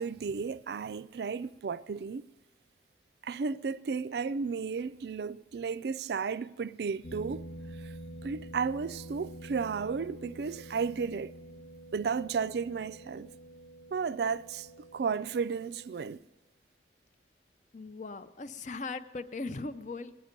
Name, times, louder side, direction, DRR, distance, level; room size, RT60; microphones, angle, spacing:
voice 1, 0.0-2.3 3.2-7.5 7.8-7.9 8.2-11.3 11.9-13.3 13.9-16.2, right 5 dB, 65° right, 0.4 m, -33 dB
sound 1, 7.0-16.1, right 1 dB, 70° left, 1.5 m, -47 dB
voice 2, 17.7-20.1, left 3 dB, 45° left, 0.5 m, -39 dB
18.0 x 11.0 x 5.2 m
head